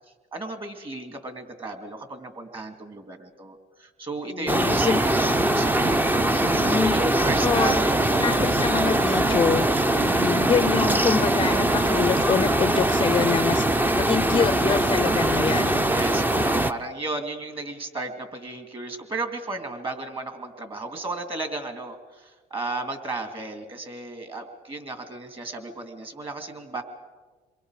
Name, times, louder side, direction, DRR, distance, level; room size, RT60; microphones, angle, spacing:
voice 1, 0.3-5.2 5.5-6.0 6.8-8.2 15.8-26.8, right 3 dB, 30° right, 6 dB, 2.7 m, -34 dB
voice 2, 4.3-5.0 6.4-7.0 7.4-7.8 8.2-9.7 10.0-15.8, left 6 dB, 30° left, 14 dB, 0.6 m, -26 dB
sound 1, 4.5-16.7, right 1 dB, 10° right, 0.6 m, -22 dB
28.0 x 23.0 x 5.0 m, 1.3 s
cardioid pair, 110°, 17 cm